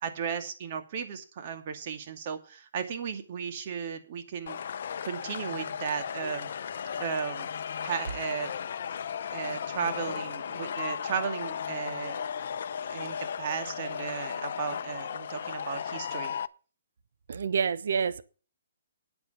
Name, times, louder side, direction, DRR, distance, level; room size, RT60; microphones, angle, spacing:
voice 1, 0.0-4.6 5.0-6.5 7.0-7.5 7.8-8.5 9.3-12.2 12.9-16.3, right 7 dB, 45° right, 2.3 m, -35 dB
sound 1, 4.5-16.5, left 7 dB, 60° left, 0.7 m, -35 dB
voice 2, 17.3-18.2, right 6 dB, 65° right, 0.9 m, -28 dB
9.6 x 8.6 x 7.0 m
figure-of-eight pair, 135°, 0 cm